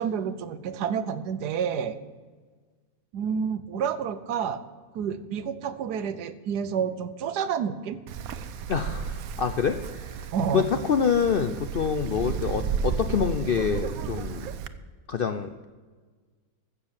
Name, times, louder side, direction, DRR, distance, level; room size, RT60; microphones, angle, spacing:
voice 1, 0.0-2.0 3.1-4.6 4.9-8.0 10.3-10.6, right 7 dB, 85° right, 13 dB, 1.4 m, -29 dB
Wind, 8.1-14.7, right 7 dB, 70° right, 1.1 m, -33 dB
voice 2, 8.7-10.3 10.5-14.5 15.1-15.6, left 6 dB, 70° left, 9 dB, 0.5 m, -26 dB
15.0 x 7.1 x 7.3 m, 1.4 s
omnidirectional pair, 1.7 m